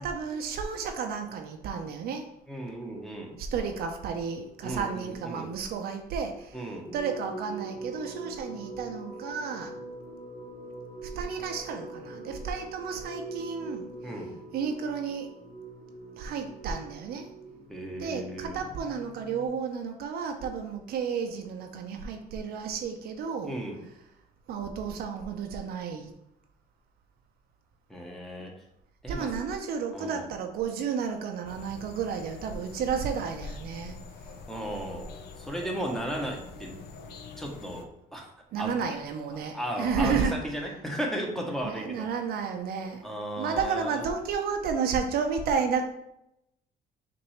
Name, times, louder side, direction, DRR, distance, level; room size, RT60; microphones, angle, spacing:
voice 1, 0.0-2.2 3.4-6.6 6.9-9.8 11.0-13.9 14.5-15.3 16.2-17.3 18.0-23.6 24.5-26.1 29.1-34.0 38.5-40.4 41.6-43.0 43.4-45.8, right 6 dB, 65° right, 5 dB, 0.6 m, -32 dB
voice 2, 2.5-3.4 4.6-5.5 6.5-6.9 14.0-14.4 17.7-18.6 23.4-23.8 27.9-28.5 29.0-29.3 29.9-30.3 34.5-35.1 35.4-36.8 37.4-38.3 38.6-38.8 39.5-42.1 43.0-44.0, right 1 dB, ahead, 0 dB, 0.9 m, -35 dB
sound 1, 6.9-19.5, right 2 dB, 30° left, 0.7 m, -43 dB
sound 2, 31.5-37.9, left 3 dB, 70° left, 0.6 m, -44 dB
5.8 x 2.6 x 3.2 m, 0.81 s
cardioid pair, 110°, 17 cm